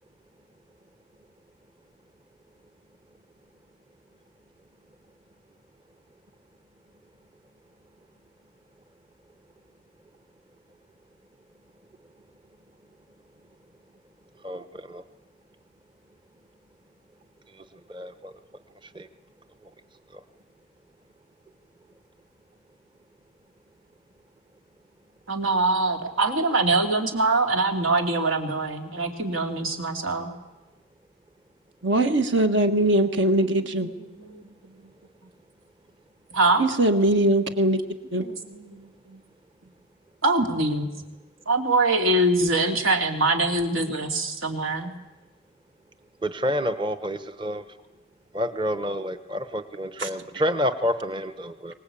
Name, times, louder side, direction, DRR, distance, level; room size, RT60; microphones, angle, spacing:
voice 1, 14.4-15.0 17.9-18.3 18.9-19.1 46.2-47.6 48.3-51.7, equal, 25° right, 11 dB, 0.9 m, -28 dB
voice 2, 25.3-30.3 33.8-34.9 36.3-36.6 38.2-39.2 40.2-40.9 41.5-44.9, right 2 dB, 85° right, 4 dB, 2.9 m, -24 dB
voice 3, 31.8-33.9 36.6-37.8 38.1-38.3 50.0-50.1, right 1 dB, 65° right, 7 dB, 1.7 m, -21 dB
24.0 x 19.0 x 8.6 m, 1.1 s
head